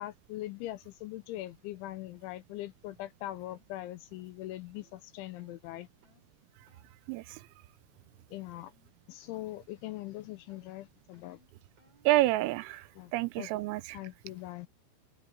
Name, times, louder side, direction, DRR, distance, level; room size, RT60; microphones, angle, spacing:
voice 1, 0.0-5.9 8.3-8.7 9.1-11.4 13.0-13.1 13.4-13.5 13.9-14.7, left 15 dB, 85° left, 2.9 m, -41 dB
sound 1, 2.8-3.0 3.5-3.7 4.1-4.3 4.7-5.0 5.4-5.6 6.0-6.3 6.7-6.9 7.3-7.5 7.9-8.3 8.6-8.9 9.2-9.6 9.9-10.2 10.5-12.8, right 2 dB, 30° right, 5.1 m, -66 dB
voice 2, 7.1-7.4 12.1-12.9 13.1-14.0, right 17 dB, 85° right, 3.3 m, -28 dB
omnidirectional pair, 6.0 m